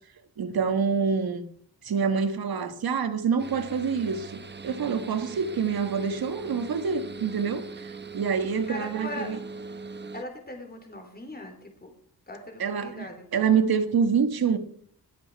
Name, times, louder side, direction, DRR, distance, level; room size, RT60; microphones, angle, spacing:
voice 1, 0.4-1.4 1.8-9.4 12.6-14.6, right 6 dB, 70° right, 1.7 m, -26 dB
sound 1, 3.4-10.2, right 4 dB, 30° right, 1.0 m, -40 dB
voice 2, 8.6-9.3 10.1-11.9 12.3-13.3, left 1 dB, 25° left, 3.5 m, -39 dB
21.0 x 8.3 x 4.7 m
wide cardioid pair, 105°, 38 cm